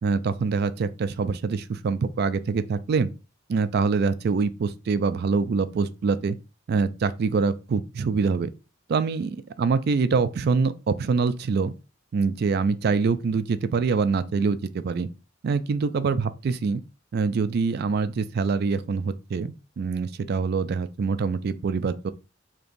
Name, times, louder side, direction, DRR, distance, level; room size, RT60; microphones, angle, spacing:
voice 1, 0.0-3.1 3.5-6.4 6.7-8.5 8.9-11.7 12.1-15.1 15.4-16.8 17.1-22.1, right 4 dB, 55° right, 0.3 m, -25 dB
5.1 x 2.9 x 2.5 m
head